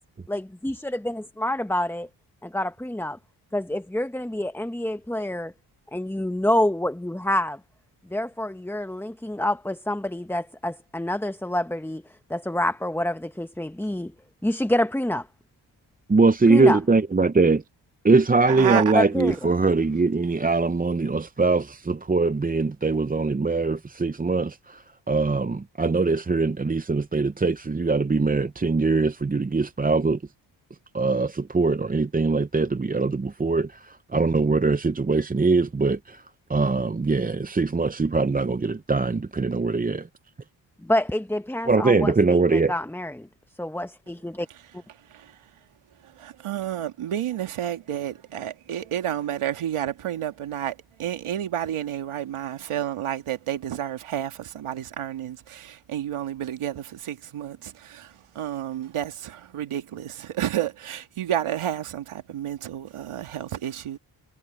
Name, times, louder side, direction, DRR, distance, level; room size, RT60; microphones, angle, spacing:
voice 1, 0.3-2.1 2.4-3.2 3.5-5.5 5.9-7.6 8.1-12.0 12.3-14.1 14.4-15.3 16.5-16.8 18.9-19.5 40.8-43.3 43.6-44.5, left 1 dB, 5° left, 1.0 m, -27 dB
voice 2, 16.1-17.6 18.0-30.2 30.9-36.2 36.5-40.1 41.7-42.7, right 3 dB, 20° right, 0.7 m, -22 dB
voice 3, 18.4-18.9 44.9-45.6 45.9-64.0, right 11 dB, 90° right, 1.8 m, -30 dB
supercardioid pair, 45°, 49 cm